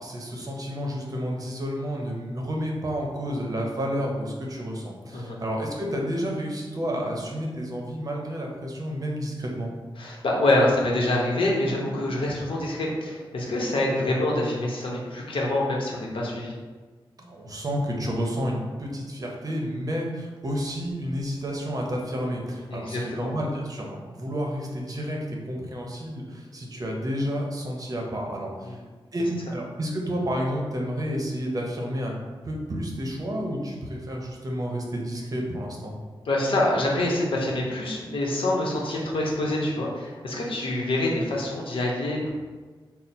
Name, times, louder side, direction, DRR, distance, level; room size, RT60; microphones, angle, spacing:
voice 1, 0.0-9.7 17.2-28.8 29.1-32.1 32.4-35.9, equal, 40° right, 0 dB, 0.7 m, -30 dB
voice 2, 10.0-16.5 22.7-23.3 28.7-28.8 36.3-42.3, left 1 dB, 70° left, -3 dB, 0.9 m, -26 dB
4.2 x 2.1 x 4.2 m, 1.4 s
wide cardioid pair, 115°, 9 cm